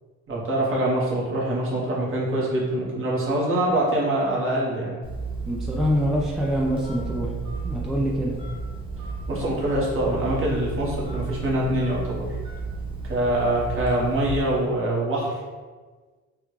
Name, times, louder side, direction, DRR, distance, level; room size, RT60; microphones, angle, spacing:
voice 1, 0.3-5.0 9.3-12.3 13.1-15.3, right 1 dB, 45° right, -5 dB, 1.2 m, -24 dB
Telephone, 5.0-14.7, right 3 dB, 15° right, 0.8 m, -33 dB
voice 2, 5.5-7.3 7.6-8.3, equal, ahead, -2 dB, 0.4 m, -25 dB
3.6 x 2.2 x 3.1 m, 1.4 s
cardioid pair, 90°, 30 cm